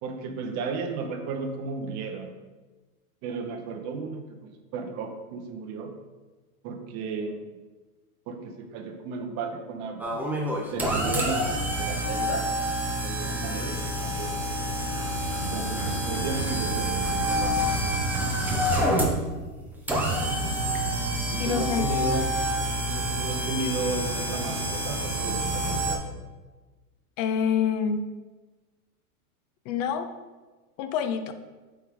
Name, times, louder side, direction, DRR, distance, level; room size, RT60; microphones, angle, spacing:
voice 1, 0.0-2.3 3.2-4.4 4.7-5.9 6.6-7.5 8.3-10.2 10.7-12.5 13.0-14.3 15.4-18.1 18.4-19.1 21.3-22.4 22.9-26.2, right 4 dB, 35° right, 4 dB, 1.0 m, -34 dB
sound 1, 10.0-25.9, equal, 5° right, 0.7 m, -27 dB
voice 2, 21.4-21.9 27.2-28.2 29.7-30.1 30.8-31.3, left 7 dB, 30° left, 9 dB, 0.4 m, -27 dB
7.8 x 4.7 x 3.7 m, 1.2 s
hypercardioid pair, 130°, 44 cm